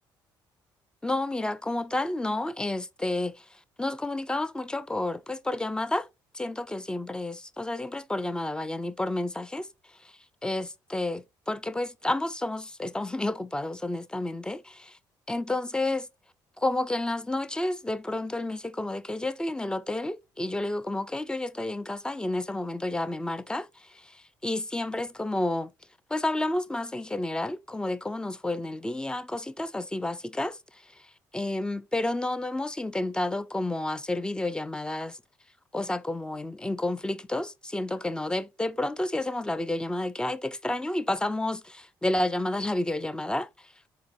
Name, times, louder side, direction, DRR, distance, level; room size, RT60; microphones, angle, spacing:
voice 1, 1.0-3.3 3.8-6.1 6.3-9.7 10.4-15.0 15.3-16.1 16.6-23.7 24.4-25.7 26.1-30.6 31.3-35.2 35.7-43.5, left 2 dB, 10° left, 0.5 m, -30 dB
4.2 x 2.7 x 2.5 m
supercardioid pair, 65°, 9 cm